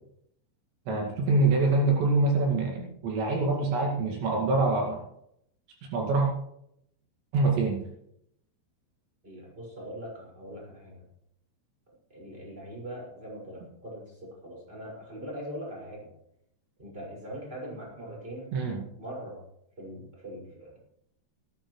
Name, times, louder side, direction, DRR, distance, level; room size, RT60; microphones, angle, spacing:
voice 1, 0.9-5.0 5.9-6.3 7.3-7.8 18.5-18.8, right 3 dB, 75° right, -1 dB, 4.4 m, -25 dB
voice 2, 9.2-11.0 12.1-16.1 16.8-18.5 19.0-19.4 19.8-20.8, equal, 10° right, -4 dB, 6.1 m, -41 dB
17.5 x 14.5 x 3.3 m, 0.75 s
omnidirectional pair, 5.3 m